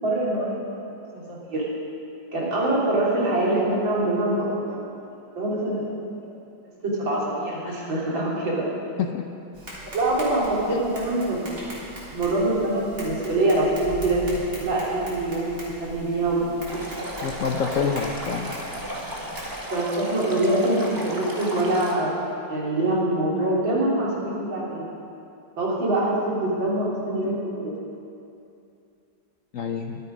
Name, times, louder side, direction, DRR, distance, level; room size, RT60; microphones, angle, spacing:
voice 1, 0.0-0.9 1.1-1.7 2.3-4.9 5.4-5.9 6.2-6.3 6.8-8.7 9.9-11.5 12.1-17.0 19.7-22.2 22.5-24.8 25.6-27.8, right 1 dB, 75° right, -6 dB, 3.9 m, -24 dB
Tap, 9.5-19.5, right 1 dB, 40° right, 3.9 m, -40 dB
Stream, 16.7-21.9, equal, 10° right, 1.5 m, -34 dB
voice 2, 17.2-18.5 29.5-30.0, left 6 dB, 70° left, 5 dB, 0.7 m, -27 dB
22.5 x 8.5 x 5.2 m, 2.6 s
omnidirectional pair, 2.1 m